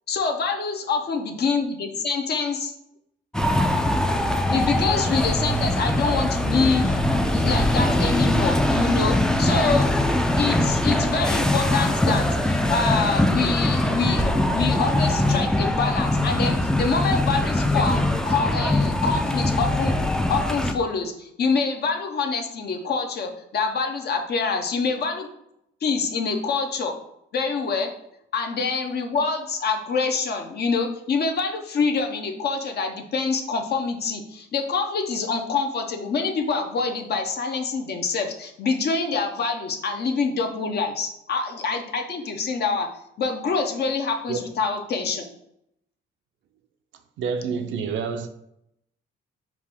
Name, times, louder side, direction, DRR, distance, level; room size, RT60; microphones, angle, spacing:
voice 1, 0.1-2.7 4.5-7.0 7.3-9.9 10.4-25.3 25.8-26.9 27.3-27.9 28.3-42.9 43.2-45.2, left 4 dB, 55° left, 0.7 m, -26 dB
sound 1, 3.3-20.7, left 1 dB, 5° left, 0.3 m, -22 dB
voice 2, 47.2-48.3, right 6 dB, 70° right, 0.5 m, -27 dB
4.8 x 2.5 x 3.5 m
cardioid pair, 90°, 20 cm